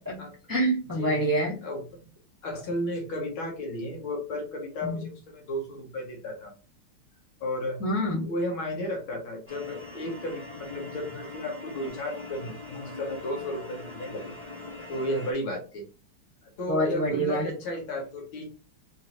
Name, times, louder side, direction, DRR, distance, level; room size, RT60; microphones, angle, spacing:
voice 1, 0.5-1.6 4.8-5.0 7.8-8.2 16.7-17.4, right 1 dB, 10° right, -5 dB, 1.1 m, -26 dB
voice 2, 2.4-6.5 7.4-7.8 8.2-14.3 14.9-15.8 16.4-18.5, left 1 dB, 65° left, 1 dB, 2.0 m, -33 dB
sound 1, 9.5-15.3, left 3 dB, 20° left, 1.3 m, -42 dB
4.4 x 3.1 x 2.8 m, 0.34 s
omnidirectional pair, 2.4 m